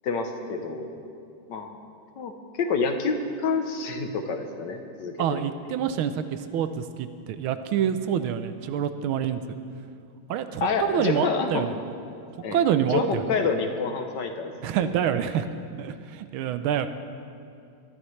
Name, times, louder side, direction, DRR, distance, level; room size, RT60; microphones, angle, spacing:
voice 1, 0.0-0.9 1.5-1.7 2.2-2.3 2.6-5.4 10.6-11.6 12.4-12.6 12.9-14.5, left 4 dB, 65° left, 5 dB, 1.4 m, -27 dB
voice 2, 5.2-9.4 10.3-11.7 12.5-13.2 14.6-15.5 15.8-16.9, right 9 dB, 80° right, 10 dB, 1.5 m, -26 dB
21.0 x 12.0 x 3.2 m, 2.4 s
omnidirectional pair, 2.3 m